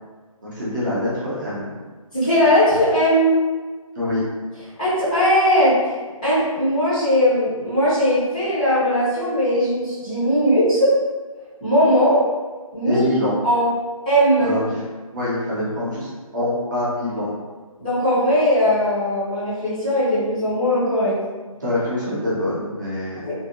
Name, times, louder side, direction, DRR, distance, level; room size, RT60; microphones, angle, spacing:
voice 1, 0.4-1.7 3.9-4.2 12.8-13.4 14.4-14.8 15.1-17.3 21.6-23.2, left 1 dB, 35° right, -7 dB, 0.7 m, -25 dB
voice 2, 2.1-3.3 4.8-5.8 6.2-10.9 11.6-12.2 12.7-13.0 13.4-13.7 14.1-14.5 17.8-21.2 23.2-23.3, equal, 15° left, -14 dB, 0.7 m, -19 dB
2.5 x 2.0 x 2.8 m, 1.4 s
figure-of-eight pair, 165°, 18 cm